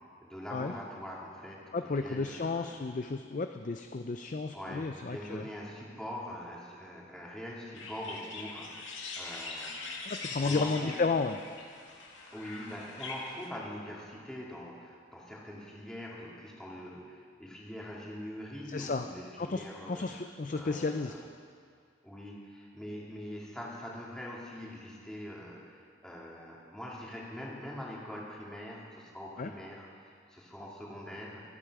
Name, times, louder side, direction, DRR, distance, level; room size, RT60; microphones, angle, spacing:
voice 1, 0.2-1.6 2.0-2.8 4.5-10.0 10.4-11.0 12.3-20.0 20.5-21.2 22.0-31.5, equal, 5° left, -5 dB, 2.5 m, -43 dB
voice 2, 1.7-5.4 10.1-11.4 18.7-19.1 19.4-21.2 29.4-29.5, left 3 dB, 40° left, 7 dB, 0.4 m, -33 dB
sound 1, 7.7-13.5, left 3 dB, 75° left, 2.2 m, -42 dB
25.5 x 9.0 x 4.8 m, 2.2 s
head